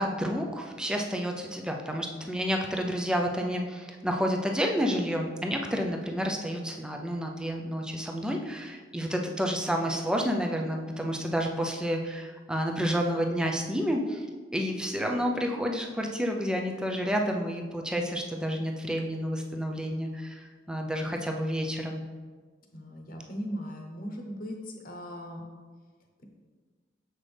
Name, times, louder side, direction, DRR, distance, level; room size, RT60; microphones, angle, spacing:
voice 1, 0.0-14.3 14.5-22.0, equal, 5° right, 2 dB, 0.6 m, -30 dB
voice 2, 22.7-25.4, equal, 50° left, 2 dB, 1.0 m, -38 dB
7.4 x 5.9 x 3.4 m, 1.5 s
head